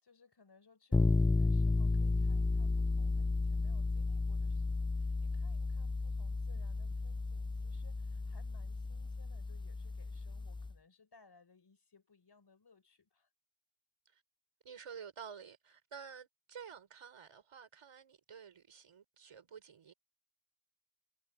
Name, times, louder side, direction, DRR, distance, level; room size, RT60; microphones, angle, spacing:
voice 1, 0.0-13.3, left 4 dB, 50° left, 5.0 m, -65 dB
sound 1, 0.9-10.7, left 3 dB, 10° left, 0.3 m, -33 dB
voice 2, 14.6-19.9, right 7 dB, 85° right, 5.6 m, -51 dB
cardioid pair, 50°, 49 cm